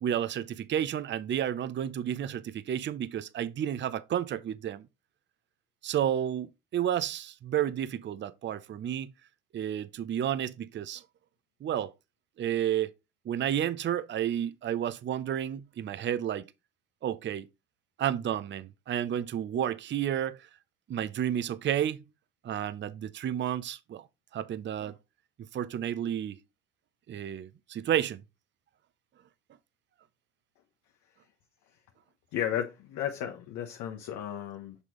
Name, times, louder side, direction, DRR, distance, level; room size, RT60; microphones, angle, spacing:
voice 1, 0.0-4.8 5.8-9.1 9.5-11.0 11.6-11.9 12.4-12.9 13.3-16.5 17.0-17.5 18.0-20.5 20.9-22.0 22.4-24.1 24.3-24.9 25.5-26.4 27.1-28.2, right 10 dB, 40° right, 0.6 m, -31 dB
voice 2, 32.3-34.8, left 10 dB, 70° left, 1.0 m, -34 dB
6.2 x 5.4 x 3.0 m
supercardioid pair, 80°, 30 cm